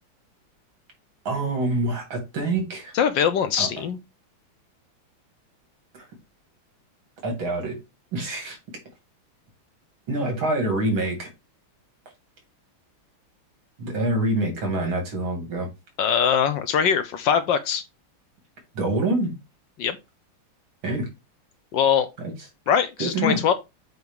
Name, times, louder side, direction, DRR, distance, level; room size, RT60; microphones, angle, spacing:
voice 1, 1.2-2.9 3.6-3.7 7.2-7.7 8.1-8.6 10.1-11.3 13.8-15.7 18.7-19.3 20.8-21.1 23.0-23.4, right 2 dB, 70° right, 3.2 m, -25 dB
voice 2, 2.9-4.0 16.0-17.8 19.8-20.0 21.7-22.1 22.7-23.5, left 7 dB, 70° left, 1.3 m, -22 dB
7.8 x 2.9 x 5.4 m
omnidirectional pair, 2.3 m